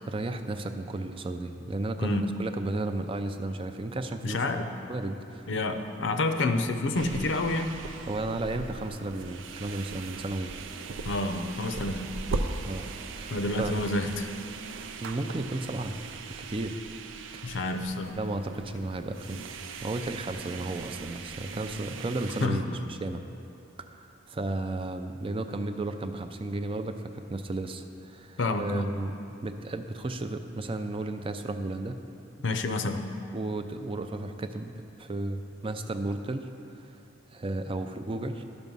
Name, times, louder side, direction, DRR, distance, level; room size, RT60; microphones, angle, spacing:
voice 1, 0.1-4.4 4.9-5.5 8.1-10.5 12.6-13.8 15.0-15.9 16.4-16.8 17.3-17.6 18.2-19.4 19.8-23.2 23.8-29.1 29.4-32.0 33.3-34.7 35.0-36.5 36.8-36.9 37.3-38.5, right 2 dB, 30° right, 7 dB, 0.4 m, -33 dB
voice 2, 4.2-4.7 5.5-7.7 11.0-12.1 13.3-14.3 17.4-18.2 22.4-22.8 28.4-28.9 32.4-33.1, left 2 dB, 70° left, 7 dB, 0.6 m, -29 dB
sound 1, 6.9-22.5, right 3 dB, 80° right, 0.5 m, -39 dB
11.5 x 6.1 x 5.4 m, 2.6 s
head